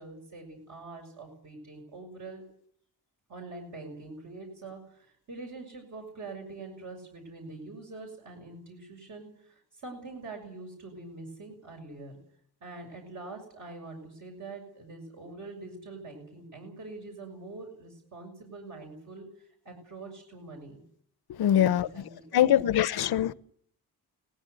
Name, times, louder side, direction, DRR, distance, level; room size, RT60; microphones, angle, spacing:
voice 1, 0.0-2.4 3.3-12.2 12.6-20.8 21.5-23.0, right 3 dB, 45° right, 6.6 m, -44 dB
voice 2, 21.4-21.9 22.3-23.3, left 11 dB, 70° left, 0.9 m, -23 dB
19.5 x 16.0 x 9.9 m
wide cardioid pair, 180°, 40 cm